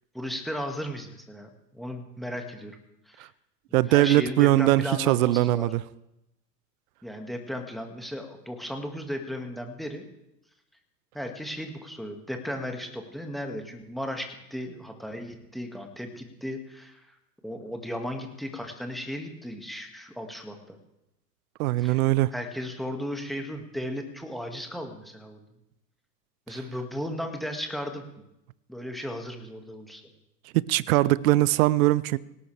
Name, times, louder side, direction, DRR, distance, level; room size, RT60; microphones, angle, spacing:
voice 1, 0.1-2.8 3.1-3.3 3.9-5.7 7.0-10.1 11.1-17.2 17.4-20.8 21.8-22.0 22.3-25.4 26.5-28.0 28.7-30.0, equal, ahead, 2.0 m, -35 dB
voice 2, 3.7-5.8 21.6-22.3 26.5-26.6 30.5-32.2, right 17 dB, 55° right, 0.6 m, -21 dB
18.5 x 17.0 x 3.4 m
hypercardioid pair, 90°, 50 cm